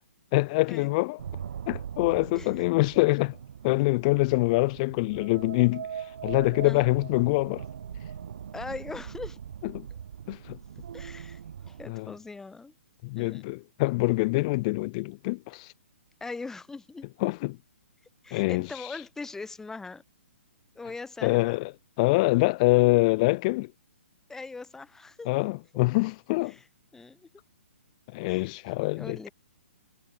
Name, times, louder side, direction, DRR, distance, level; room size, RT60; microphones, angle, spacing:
voice 1, 0.3-1.2 1.7-3.4 3.6-5.9 6.2-7.6 9.6-9.9 10.3-10.6 11.9-12.1 13.0-15.7 17.2-17.6 18.3-18.7 21.2-21.7 22.0-23.7 25.3-26.5 28.1-29.2, left 24 dB, 35° left, 0.5 m, -25 dB
sound 1, 1.2-11.9, right 8 dB, 65° right, 2.1 m, -41 dB
voice 2, 8.5-9.4 10.9-11.4 11.7-12.7 13.2-13.4 16.2-17.1 18.2-20.0 20.7-21.6 24.3-25.3 26.5-26.6 26.9-27.3 28.3-28.5 29.0-29.3, left 3 dB, 5° left, 2.7 m, -40 dB
hypercardioid pair, 135°, 7 cm